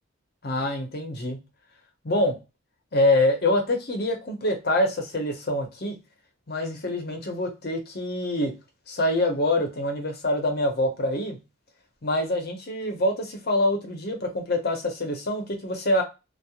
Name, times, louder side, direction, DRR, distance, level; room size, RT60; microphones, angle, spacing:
voice 1, 0.4-1.4 2.0-2.4 2.9-5.9 6.5-8.5 8.9-11.4 12.0-16.0, left 1 dB, 50° left, 0.7 m, -25 dB
2.9 x 2.0 x 2.2 m
head